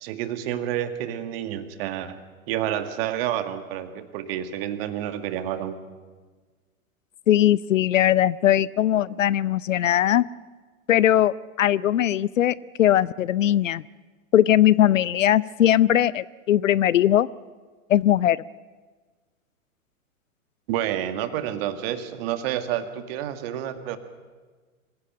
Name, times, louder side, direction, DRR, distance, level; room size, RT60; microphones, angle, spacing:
voice 1, 0.0-2.2 2.5-5.8 20.7-24.0, right 11 dB, 45° right, 9 dB, 2.0 m, -29 dB
voice 2, 7.3-10.3 10.9-13.8 14.3-17.3 17.9-18.4, left 12 dB, 65° left, 21 dB, 0.7 m, -20 dB
25.0 x 16.0 x 9.1 m, 1.4 s
figure-of-eight pair, 105°, 42 cm